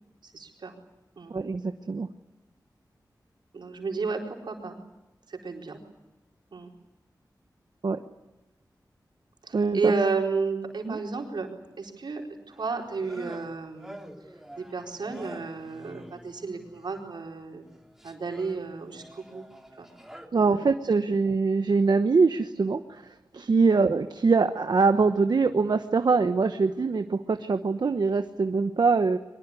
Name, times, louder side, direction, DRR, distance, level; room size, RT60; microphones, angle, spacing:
voice 1, 0.2-0.7 1.2-1.3 3.5-4.8 5.3-5.8 6.5-6.7 9.4-12.2 12.5-14.0 14.6-17.6 18.0-19.4 19.8-19.9 20.3-20.9 23.7-23.9, right 4 dB, 85° right, 1 dB, 4.5 m, -32 dB
voice 2, 1.3-2.1 7.8-8.0 9.5-9.9 10.9-11.0 20.3-29.2, right 4 dB, 70° right, 8 dB, 1.1 m, -23 dB
sound 1, 12.5-17.2 17.6-20.3, equal, 5° right, 3.3 m, -48 dB
23.5 x 21.5 x 9.9 m, 1.0 s
wide cardioid pair, 65°, 8 cm